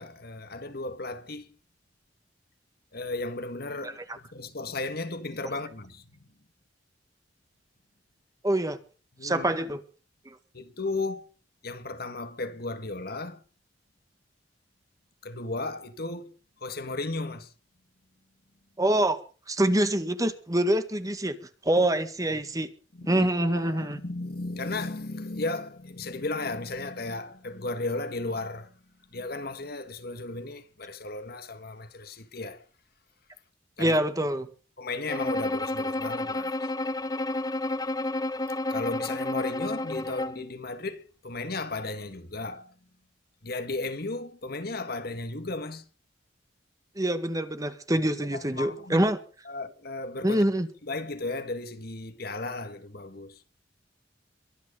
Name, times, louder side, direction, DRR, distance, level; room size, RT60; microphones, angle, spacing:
voice 1, 0.0-1.5 2.9-6.2 9.2-9.5 10.5-11.3 11.6-13.4 15.2-16.3 16.6-17.5 22.9-28.7 29.1-32.7 33.8-34.0 34.8-36.7 38.7-42.7 43.4-45.8 48.2-49.1 49.5-50.4 50.8-53.4, left 2 dB, 55° left, 1.8 m, -35 dB
voice 2, 8.4-8.8 9.2-9.8 10.3-10.4 18.8-19.2 19.5-21.4 21.6-22.7 23.1-24.0 33.8-34.5 47.0-49.2 50.2-50.7, right 1 dB, 20° right, 1.8 m, -25 dB
Bowed string instrument, 35.1-40.5, left 2 dB, 20° left, 0.9 m, -30 dB
23.5 x 9.6 x 5.2 m
head